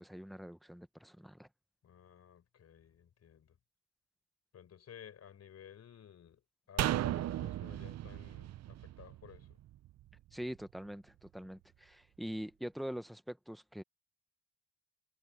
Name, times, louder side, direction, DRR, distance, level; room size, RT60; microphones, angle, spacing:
voice 1, 0.0-1.5 10.3-13.8, equal, ahead, 1.0 m, -44 dB
voice 2, 1.8-3.6 4.5-9.6, left 9 dB, 55° left, 4.5 m, -55 dB
sound 1, 6.8-10.1 10.4-10.5, right 13 dB, 60° right, 0.7 m, -36 dB
cardioid pair, 90°, 30 cm